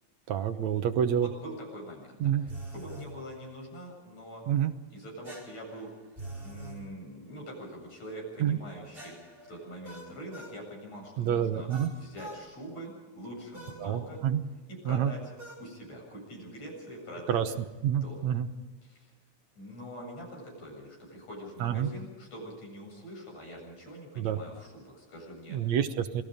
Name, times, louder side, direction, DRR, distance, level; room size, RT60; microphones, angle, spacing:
voice 1, 0.3-1.3 2.2-2.4 4.5-4.7 8.4-8.6 11.2-11.9 13.8-14.4 14.9-15.1 17.3-17.5 17.8-18.5 21.6-21.9 24.2-24.4 25.5-26.2, right 9 dB, 75° right, 8 dB, 2.3 m, -28 dB
voice 2, 0.9-4.4 4.9-5.9 6.4-9.2 9.5-14.2 14.7-15.3 15.6-17.4 17.9-18.3 18.8-19.1 19.6-25.7, equal, 65° left, -1 dB, 9.1 m, -44 dB
sound 1, 2.5-3.1 5.2-6.8 8.9-10.6 11.7-12.4 13.5-13.8 15.4-15.7, right 1 dB, 15° right, 5.2 m, -44 dB
27.5 x 20.0 x 5.2 m, 1.2 s
omnidirectional pair, 3.3 m